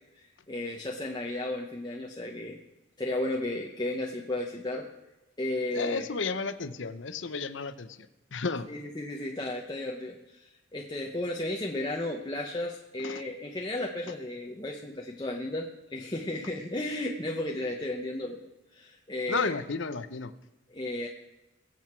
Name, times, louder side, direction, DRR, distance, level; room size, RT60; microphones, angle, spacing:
voice 1, 0.1-2.6 3.0-4.9 5.4-6.1 8.7-18.4 18.7-19.5 20.7-21.1, left 1 dB, 20° left, -1 dB, 1.0 m, -34 dB
voice 2, 5.7-8.0 8.3-8.7 13.0-13.2 19.3-20.3, left 4 dB, 70° left, 13 dB, 0.8 m, -32 dB
21.5 x 8.0 x 4.5 m, 0.99 s
head